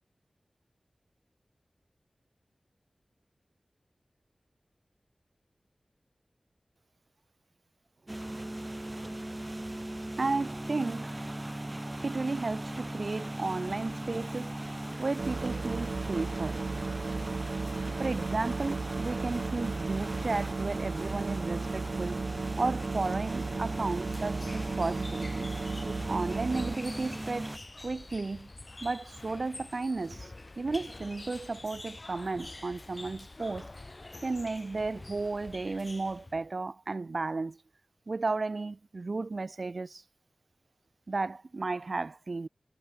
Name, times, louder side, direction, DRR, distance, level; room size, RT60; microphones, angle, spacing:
sound 1, 8.1-27.6, right 1 dB, 25° right, 4.8 m, -38 dB
voice 1, 10.2-11.1 12.0-14.5 15.0-16.6 17.6-17.7 18.0-22.2 22.6-25.5 26.1-28.5 28.8-33.7 34.2-37.6 38.1-40.0 41.1-42.5, right 3 dB, 65° right, 2.0 m, -33 dB
sound 2, 15.2-26.8, right 4 dB, 80° right, 2.9 m, -35 dB
sound 3, 24.0-36.5, left 2 dB, 40° left, 4.4 m, -47 dB
wide cardioid pair, 50°, 0 cm